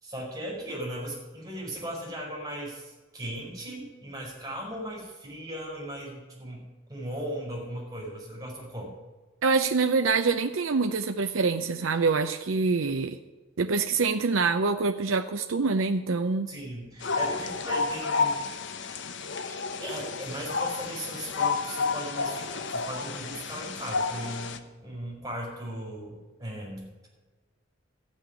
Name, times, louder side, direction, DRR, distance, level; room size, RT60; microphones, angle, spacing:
voice 1, 0.0-6.6 6.9-8.9 16.5-18.8 19.5-26.9, right 1 dB, 20° right, -3 dB, 5.4 m, -38 dB
voice 2, 9.4-13.2 13.6-16.5, right 4 dB, 80° right, 7 dB, 0.6 m, -25 dB
sound 1, 17.0-24.6, left 4 dB, 60° left, 0.9 m, -31 dB
14.0 x 6.4 x 10.0 m, 1.3 s
head